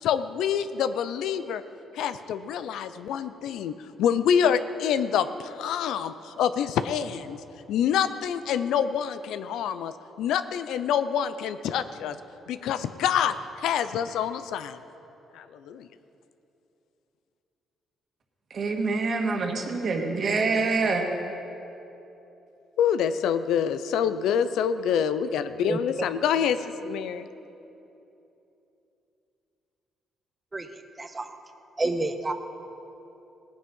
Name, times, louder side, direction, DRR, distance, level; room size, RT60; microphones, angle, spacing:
voice 1, 0.0-1.6 1.9-7.4 7.7-12.2 12.5-14.8 15.3-15.9 22.8-27.3, left 8 dB, 85° left, 12 dB, 0.6 m, -26 dB
voice 2, 18.5-21.0, right 3 dB, 50° right, 2 dB, 1.9 m, -26 dB
voice 3, 31.0-31.3 31.8-32.3, right 2 dB, 20° right, 7 dB, 0.8 m, -28 dB
17.5 x 9.3 x 5.5 m, 2.9 s
cardioid pair, 90°, 0 cm